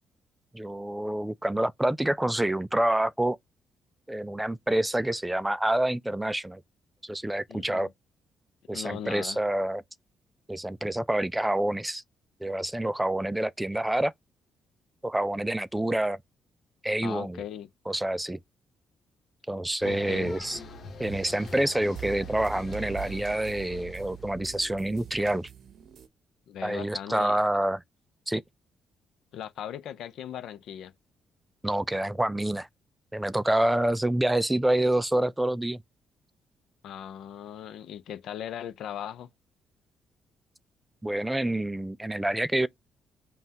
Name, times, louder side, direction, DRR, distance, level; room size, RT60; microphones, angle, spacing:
voice 1, 0.5-3.4 4.1-6.6 7.0-7.9 8.7-9.8 10.5-12.0 12.4-14.1 15.0-16.2 16.8-17.4 17.9-18.4 19.5-20.6 21.0-25.5 26.6-27.8 28.3-28.4 31.6-32.7 33.1-35.8 41.0-42.7, right 1 dB, 10° right, 0.3 m, -27 dB
voice 2, 7.5-7.9 8.7-9.4 17.0-17.7 19.8-20.4 26.5-27.4 29.3-30.9 36.8-39.3, left 10 dB, 75° left, 0.6 m, -38 dB
sound 1, 19.8-24.8, left 3 dB, 55° left, 1.3 m, -44 dB
sound 2, 21.0-26.1, right 10 dB, 65° right, 0.7 m, -43 dB
5.4 x 2.3 x 2.8 m
cardioid pair, 90°, 0 cm